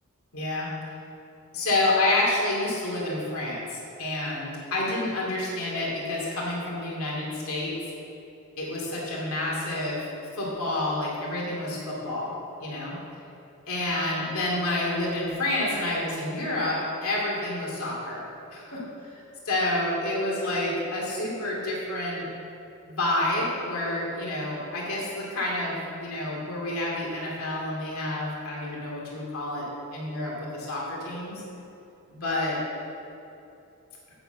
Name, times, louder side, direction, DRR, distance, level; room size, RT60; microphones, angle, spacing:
voice 1, 0.3-0.7 1.5-7.7 8.6-10.1 10.3-12.3 12.6-13.0 13.7-18.2 18.5-18.8 19.5-22.3 22.8-29.7 29.9-31.4 32.1-32.6, left 2 dB, 75° left, -4 dB, 2.4 m, -29 dB
7.7 x 6.8 x 7.8 m, 2.8 s
head